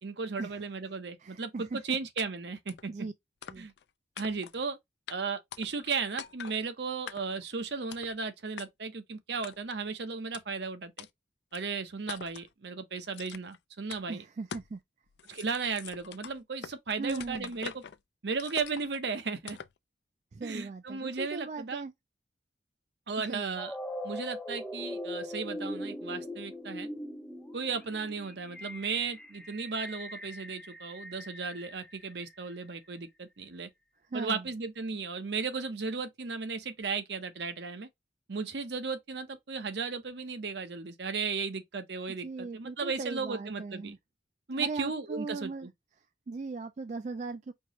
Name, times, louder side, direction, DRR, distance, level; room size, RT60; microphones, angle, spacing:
voice 1, 0.0-2.9 3.6-3.7 4.2-4.8 5.1-11.1 11.5-14.2 15.3-17.8 18.2-19.6 20.4-21.8 23.1-23.8 24.0-26.9 27.5-33.7 34.1-37.9 38.3-44.0 44.5-45.7, right 4 dB, 65° right, 0.8 m, -35 dB
voice 2, 1.2-2.0 2.9-3.1 3.5-3.7 14.1-14.8 17.0-17.5 20.3-21.9 23.2-23.6 34.1-34.5 42.2-44.0 44.5-45.7 46.3-47.5, right 4 dB, 40° right, 0.3 m, -38 dB
sound 1, 2.2-2.3 2.7-2.9 3.4-3.8 4.2-4.6 5.1-5.2 5.5-5.9 6.2-6.6 7.1-7.4 7.9-8.2 8.6-8.7 9.4-9.8 10.3-10.4 11.0-11.1 11.5-11.6 12.1-12.5 13.1-13.6 13.9-14.0 14.5-14.8 15.1-16.8 17.1-18.0 18.4-19.0 19.5-19.8, left 8 dB, 65° left, 0.4 m, -44 dB
sound 2, 23.6-32.5, left 1 dB, 5° left, 0.6 m, -41 dB
4.5 x 2.9 x 2.9 m
head